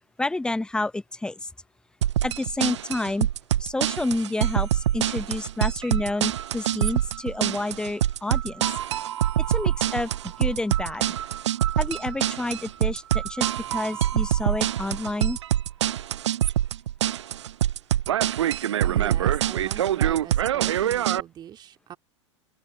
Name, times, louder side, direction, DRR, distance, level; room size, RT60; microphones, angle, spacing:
voice 1, 0.2-1.5 2.2-3.3 3.6-8.7 9.5-10.1 10.4-11.0 11.8-15.4, left 2 dB, 5° left, 1.0 m, -29 dB
sound 1, 2.0-21.2, right 11 dB, 70° right, 0.4 m, -25 dB
voice 2, 18.8-22.0, right 10 dB, 30° right, 2.5 m, -41 dB
open air
figure-of-eight pair, 90°, 16 cm